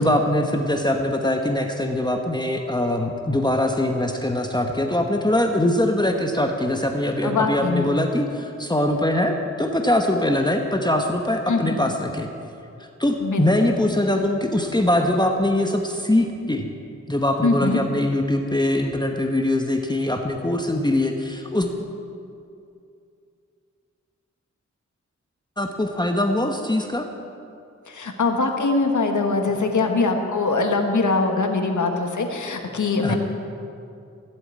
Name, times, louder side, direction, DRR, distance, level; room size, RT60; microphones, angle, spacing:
voice 1, 0.0-12.3 13.0-16.7 17.1-21.7 25.6-27.1 33.0-33.1, left 1 dB, 15° left, 3 dB, 1.1 m, -22 dB
voice 2, 7.2-7.9 11.5-11.8 13.2-13.5 17.4-17.8 27.9-33.2, left 3 dB, 85° left, 4 dB, 1.5 m, -22 dB
16.0 x 7.9 x 8.8 m, 2.5 s
wide cardioid pair, 75°, 29 cm